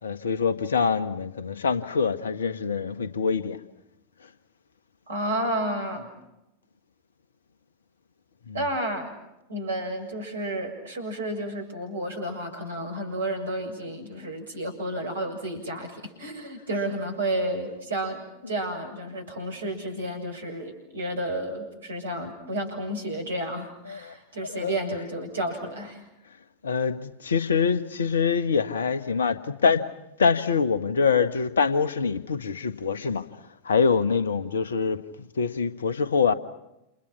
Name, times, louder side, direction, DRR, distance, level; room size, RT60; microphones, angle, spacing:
voice 1, 0.0-3.6 8.5-8.8 18.4-18.6 22.6-22.7 23.8-24.9 26.6-29.9 30.2-33.2 33.6-36.3, left 5 dB, 70° left, 1.4 m, -25 dB
voice 2, 5.1-6.1 8.5-9.1 9.5-26.0, right 1 dB, 70° right, 7.2 m, -31 dB
29.5 x 29.0 x 6.0 m
figure-of-eight pair, 85°, 0 cm